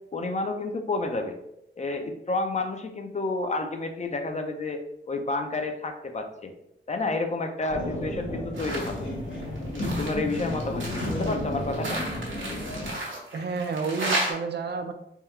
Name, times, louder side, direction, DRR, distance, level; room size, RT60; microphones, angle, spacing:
voice 1, 0.1-1.4 1.8-6.5 6.9-9.1 9.7-12.0, left 2 dB, 35° left, 5 dB, 0.4 m, -30 dB
sound 1, 7.7-12.9, left 1 dB, 75° left, 1.2 m, -32 dB
sound 2, 8.5-9.0 9.3-14.3, right 1 dB, 85° right, 1.1 m, -33 dB
voice 2, 13.3-14.9, right 4 dB, 65° right, 7 dB, 0.4 m, -31 dB
3.5 x 2.3 x 4.3 m, 0.81 s
wide cardioid pair, 135°, 19 cm